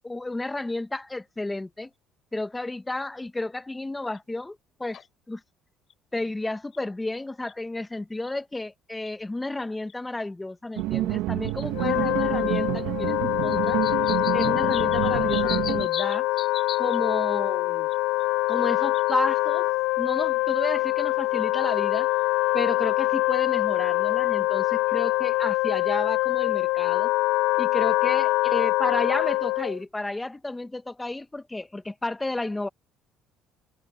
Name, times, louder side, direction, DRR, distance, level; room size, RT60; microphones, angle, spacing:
voice 1, 0.0-1.9 2.3-5.0 5.3-5.4 6.1-13.8 14.3-16.3 16.8-17.9 18.5-19.7 20.0-22.1 22.5-27.1 27.6-32.7, left 2 dB, 10° left, 1.5 m, -32 dB
sound 1, 4.1-4.2 4.9-5.1 5.9-6.2 6.7-6.8 7.5-7.6 8.3-8.4 9.0-9.1 9.9-10.0 10.8-10.9 11.5-11.8 12.5-12.8 13.5-17.0 17.9-18.2 18.8-19.4 21.1-21.2, left 8 dB, 50° left, 3.2 m, -38 dB
sound 2, 10.8-15.9, right 16 dB, 80° right, 1.7 m, -28 dB
Wind instrument woodwind instrument, 11.7-29.8, left 19 dB, 80° left, 0.5 m, -24 dB
cardioid pair, 100°, 0 cm